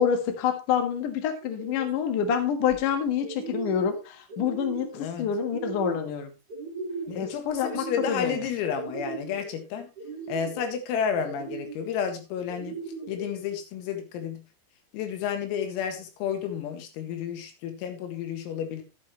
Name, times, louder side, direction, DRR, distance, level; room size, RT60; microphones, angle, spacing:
voice 1, 0.0-6.3 7.1-8.4, left 8 dB, 65° left, 6 dB, 2.0 m, -27 dB
sound 1, 1.4-1.9 2.3-2.9 3.2-3.9 4.3-5.0 5.4-6.1 6.5-7.3 7.6-8.3 8.7-9.5 10.0-10.7 11.2-11.9 12.5-13.3, right 5 dB, 25° right, 2.5 m, -37 dB
voice 2, 4.9-5.3 7.1-9.9 10.3-12.8 13.1-14.4 14.9-18.8, left 7 dB, 90° left, 6 dB, 4.3 m, -31 dB
12.5 x 8.5 x 3.2 m, 0.28 s
omnidirectional pair, 6.0 m